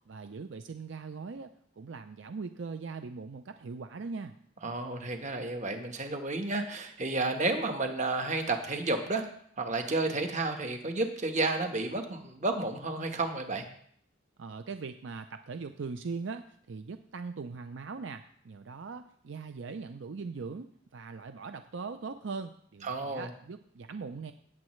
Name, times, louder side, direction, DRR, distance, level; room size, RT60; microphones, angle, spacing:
voice 1, 0.1-1.5 1.8-4.3 14.4-24.3, right 4 dB, 70° right, 9 dB, 0.5 m, -40 dB
voice 2, 4.6-9.2 9.6-13.6 22.8-23.3, right 2 dB, 40° right, 5 dB, 1.2 m, -31 dB
16.5 x 7.3 x 3.2 m, 0.64 s
head